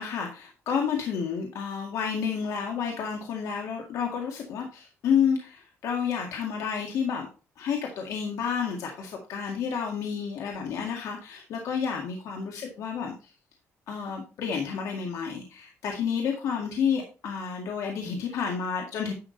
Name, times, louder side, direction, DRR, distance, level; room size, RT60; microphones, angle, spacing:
voice 1, 0.0-7.3 7.6-13.3 13.9-19.1, left 7 dB, 80° left, 1 dB, 2.0 m, -30 dB
10.5 x 6.2 x 4.0 m, 0.33 s
cardioid pair, 115°, 5 cm